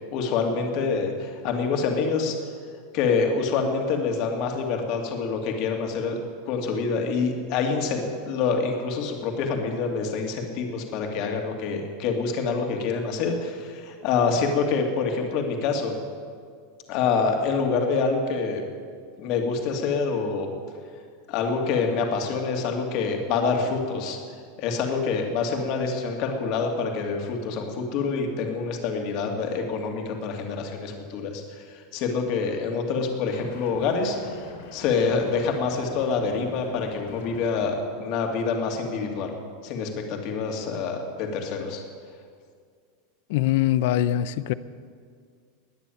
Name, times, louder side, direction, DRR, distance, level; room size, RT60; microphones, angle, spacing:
voice 1, 0.1-2.3 2.9-6.2 6.5-15.9 16.9-18.6 19.2-20.5 21.3-24.2 24.6-34.4 34.7-39.3 39.6-41.8, left 5 dB, 45° left, 3 dB, 2.5 m, -26 dB
sound 1, 33.3-37.6, left 4 dB, 90° left, 4.5 m, -44 dB
voice 2, 43.3-44.5, left 12 dB, 65° left, 16 dB, 0.6 m, -22 dB
20.0 x 6.9 x 9.3 m, 2.1 s
supercardioid pair, 150°, 0 cm